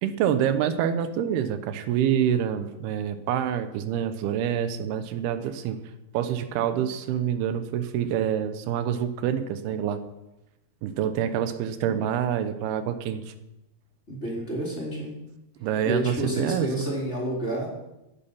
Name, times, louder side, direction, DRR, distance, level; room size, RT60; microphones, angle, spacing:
voice 1, 0.0-5.8 6.1-10.0 10.8-13.3 15.6-16.7, right 9 dB, 85° right, 10 dB, 2.9 m, -26 dB
voice 2, 14.1-15.1 15.8-17.7, right 1 dB, 15° left, -4 dB, 4.3 m, -29 dB
15.5 x 11.0 x 5.6 m, 0.93 s
omnidirectional pair, 4.5 m